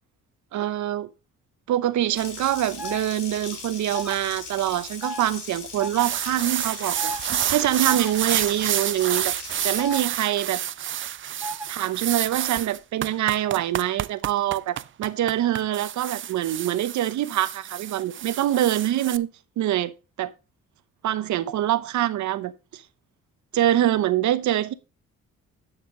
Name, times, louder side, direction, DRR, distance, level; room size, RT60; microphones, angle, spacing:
voice 1, 0.5-1.1 1.7-7.1 7.5-9.3 9.6-10.6 11.7-19.3 19.6-19.9 20.2-20.3 21.0-22.8 23.5-24.7, right 12 dB, 70° right, 0.8 m, -24 dB
Water tap faucet, 2.1-10.0, left 5 dB, 85° left, 3.2 m, -39 dB
sound 1, 2.8-3.0 3.9-4.1 5.0-5.2 5.8-6.1 6.9-7.2 7.9-8.1 9.8-10.0 11.4-11.7, right 1 dB, 5° right, 1.8 m, -33 dB
sound 2, 6.0-19.2, right 11 dB, 40° right, 0.4 m, -29 dB
11.0 x 6.6 x 3.7 m
cardioid pair, 90°, 30 cm